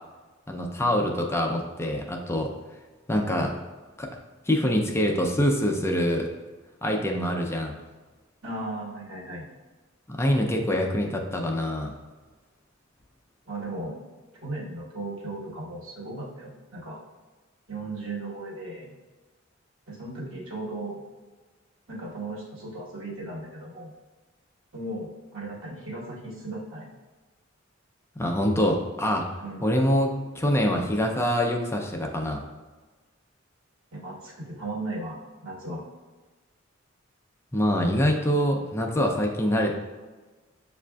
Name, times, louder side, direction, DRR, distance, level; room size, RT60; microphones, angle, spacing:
voice 1, 0.5-2.5 3.1-3.5 4.0-4.1 4.5-6.3 6.8-7.8 10.1-11.9 28.2-29.2 29.6-32.4 37.5-39.7, equal, 15° left, 1 dB, 0.4 m, -25 dB
voice 2, 8.4-9.5 13.5-14.0 14.4-17.0 17.7-18.9 19.9-21.0 21.9-23.9 24.7-26.9 29.4-29.7 33.9-35.8, right 2 dB, 90° right, -4 dB, 1.2 m, -36 dB
7.2 x 2.5 x 2.2 m, 1.3 s
head